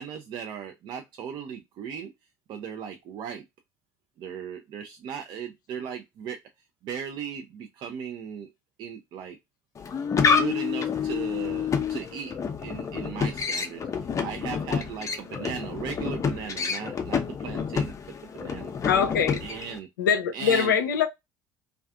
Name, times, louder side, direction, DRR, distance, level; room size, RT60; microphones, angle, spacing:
voice 1, 0.0-2.1 2.5-3.4 4.2-6.4 6.8-8.5 8.8-9.4 10.3-17.9 18.3-18.7 19.4-19.9 20.3-20.7, right 7 dB, 50° right, 0.4 m, -37 dB
sound 1, 9.8-19.8, left 6 dB, 30° left, 0.5 m, -28 dB
voice 2, 18.8-19.4 20.0-21.1, left 7 dB, 80° left, 0.4 m, -23 dB
2.4 x 2.2 x 2.3 m
figure-of-eight pair, 60°, 10 cm